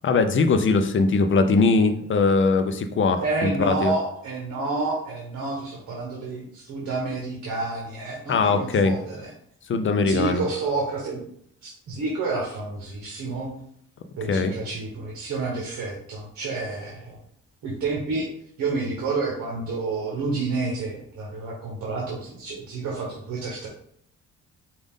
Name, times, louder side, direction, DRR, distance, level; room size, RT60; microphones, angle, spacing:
voice 1, 0.0-3.9 8.3-8.9 9.7-10.4 14.3-14.5, left 4 dB, 40° left, 8 dB, 0.6 m, -21 dB
voice 2, 3.2-9.3 10.0-11.2 11.6-13.5 14.2-17.2 17.6-18.3 18.6-23.7, right 3 dB, 70° right, -2 dB, 1.2 m, -29 dB
5.2 x 2.5 x 3.6 m, 0.66 s
cardioid pair, 90°, 30 cm